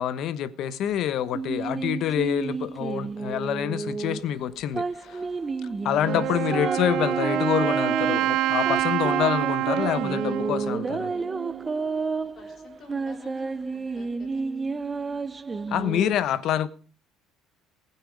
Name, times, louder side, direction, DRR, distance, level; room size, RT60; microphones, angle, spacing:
voice 1, 0.0-5.2 5.8-11.1 15.7-16.7, left 10 dB, 55° left, 1.2 m, -27 dB
sound 1, 1.3-16.1, right 4 dB, 20° right, 0.7 m, -31 dB
voice 2, 5.0-5.3 5.9-6.1 12.3-14.5 16.2-16.4, left 5 dB, 40° left, 3.4 m, -51 dB
Wind instrument woodwind instrument, 6.0-11.8, right 15 dB, 60° right, 0.6 m, -27 dB
19.5 x 8.9 x 5.3 m
cardioid pair, 135°, 0 cm